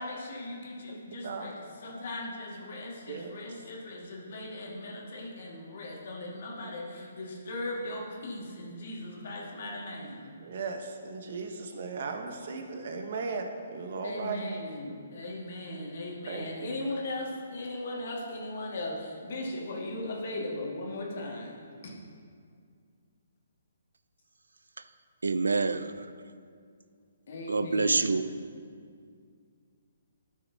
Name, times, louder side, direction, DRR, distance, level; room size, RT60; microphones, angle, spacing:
voice 1, 0.0-1.5 1.8-10.3 14.0-21.9 27.3-28.1, left 1 dB, 55° left, -2 dB, 1.8 m, -38 dB
voice 2, 1.2-1.5 3.1-3.3 6.6-7.1 10.4-14.4 14.9-15.0 16.2-16.7, right 4 dB, 55° right, 5 dB, 0.9 m, -37 dB
voice 3, 25.2-25.9 27.5-28.2, right 3 dB, 80° right, 12 dB, 0.3 m, -26 dB
12.5 x 6.2 x 2.7 m, 2.2 s
figure-of-eight pair, 135°, 0 cm